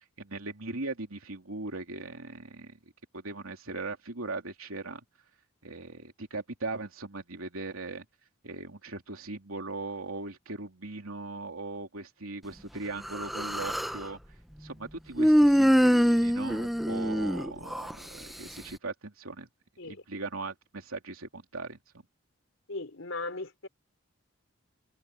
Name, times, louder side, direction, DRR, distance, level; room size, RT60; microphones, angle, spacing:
voice 1, 0.0-2.8 3.1-5.0 5.6-8.0 8.4-14.2 14.6-19.5 19.8-21.8, right 3 dB, 90° right, 3.3 m, -39 dB
Human voice, 13.1-14.0 15.2-17.9, equal, ahead, 0.9 m, -23 dB
voice 2, 22.7-23.7, left 3 dB, 70° left, 3.2 m, -37 dB
head